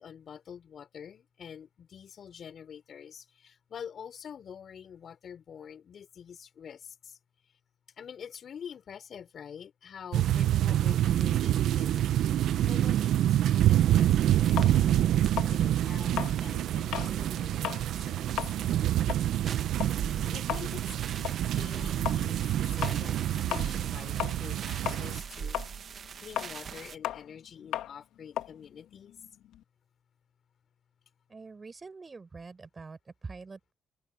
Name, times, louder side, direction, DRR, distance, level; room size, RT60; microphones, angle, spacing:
voice 1, 0.0-7.2 8.0-12.0 12.6-15.1 15.5-18.2 20.3-21.0 21.5-22.5 22.7-29.2, left 8 dB, 55° left, 5.3 m, -46 dB
sound 1, 10.1-25.2, right 12 dB, 80° right, 0.8 m, -27 dB
sound 2, 11.1-27.0, right 7 dB, 55° right, 1.3 m, -44 dB
sound 3, 14.6-17.2 17.5-17.9 18.2-24.6 24.8-29.6, left 12 dB, 90° left, 2.6 m, -36 dB
voice 2, 31.3-33.7, right 4 dB, 30° right, 7.3 m, -45 dB
cardioid pair, 90°, 0 cm